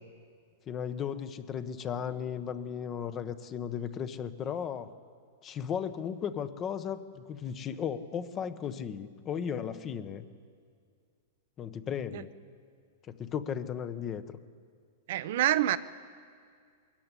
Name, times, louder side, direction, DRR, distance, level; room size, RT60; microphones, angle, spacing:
voice 1, 0.7-4.9 5.4-10.2 11.6-12.3 13.1-14.4, left 8 dB, 30° left, 11 dB, 1.1 m, -35 dB
voice 2, 15.1-15.8, right 13 dB, 65° right, 12 dB, 0.8 m, -26 dB
21.0 x 14.5 x 9.9 m, 2.2 s
hypercardioid pair, 130°, 0 cm